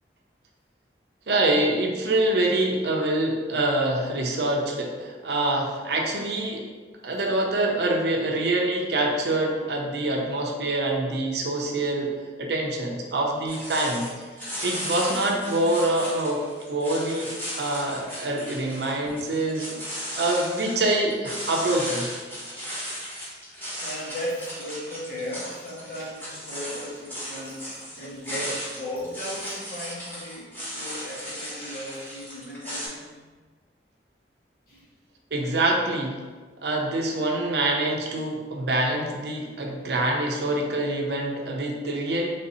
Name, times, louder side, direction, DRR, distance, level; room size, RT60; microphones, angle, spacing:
voice 1, 1.3-6.6 7.0-12.1 12.4-14.1 14.6-16.4 16.7-22.1 35.3-36.2 36.6-42.3, right 2 dB, 70° right, 0 dB, 0.6 m, -25 dB
sound 1, 13.5-32.9, equal, 10° left, 1.2 m, -36 dB
voice 2, 23.8-33.1 34.7-34.9, equal, 55° left, -6 dB, 1.2 m, -36 dB
3.4 x 2.7 x 4.1 m, 1.4 s
head